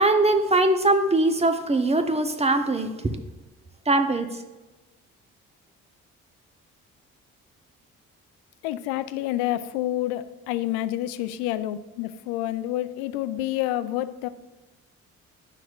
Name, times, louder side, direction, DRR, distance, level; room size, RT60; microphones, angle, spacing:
voice 1, 0.0-3.2 3.9-4.3, right 2 dB, 15° right, 7 dB, 0.8 m, -21 dB
voice 2, 8.6-14.3, left 14 dB, 70° left, 14 dB, 0.5 m, -28 dB
9.7 x 5.8 x 2.4 m, 1.1 s
figure-of-eight pair, 45°, 40 cm